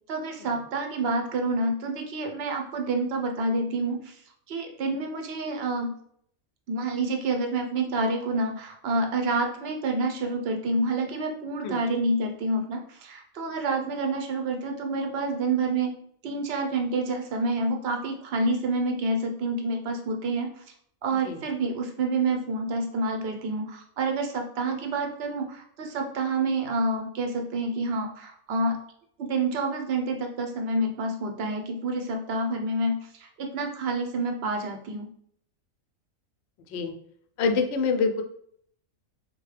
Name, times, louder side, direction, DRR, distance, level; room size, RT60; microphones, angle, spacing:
voice 1, 0.1-4.2 4.5-5.9 6.7-15.9 16.2-20.6 21.0-28.8 29.2-35.1, right 2 dB, 55° right, 3 dB, 0.7 m, -28 dB
voice 2, 37.4-38.2, left 4 dB, 65° left, 5 dB, 0.7 m, -25 dB
3.9 x 2.2 x 3.2 m, 0.65 s
omnidirectional pair, 1.5 m